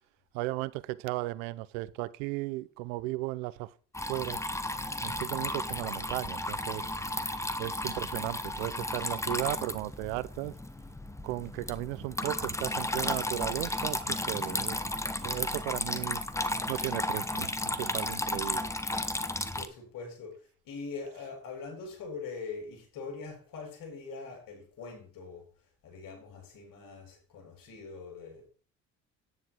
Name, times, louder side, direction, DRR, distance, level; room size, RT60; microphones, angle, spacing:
voice 1, 0.3-3.7 4.1-4.4 5.0-6.9 7.6-10.5 11.2-14.8 15.2-16.2 16.7-18.7, right 19 dB, 85° right, 0.7 m, -35 dB
Water tap faucet / Trickle dribble, 3.9-19.7, left 1 dB, 10° left, 1.2 m, -34 dB
voice 2, 19.6-20.4 20.6-25.5 25.8-28.5, left 4 dB, 65° left, 6.7 m, -42 dB
9.9 x 9.9 x 4.5 m
supercardioid pair, 70°, 36 cm